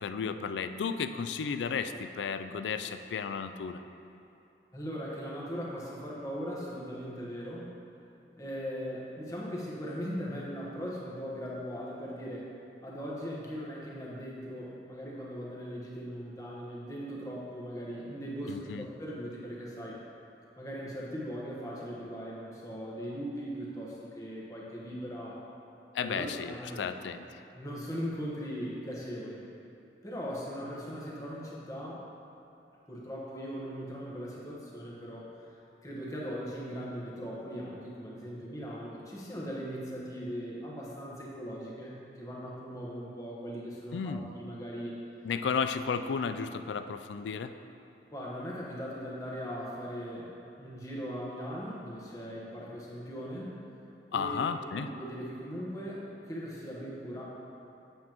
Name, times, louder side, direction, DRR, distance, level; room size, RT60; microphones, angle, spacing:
voice 1, 0.0-3.8 18.5-18.9 25.9-27.3 43.9-44.3 45.2-47.5 54.1-54.9, left 6 dB, 90° left, 10 dB, 0.4 m, -33 dB
voice 2, 4.7-7.7 8.4-12.5 12.8-20.0 20.6-25.4 26.0-26.9 27.5-29.4 30.0-32.0 32.9-35.5 35.8-44.9 48.1-50.3 50.6-53.6 54.1-54.5 54.7-57.2, equal, 20° left, -5 dB, 1.2 m, -39 dB
8.5 x 7.3 x 3.0 m, 2.9 s
head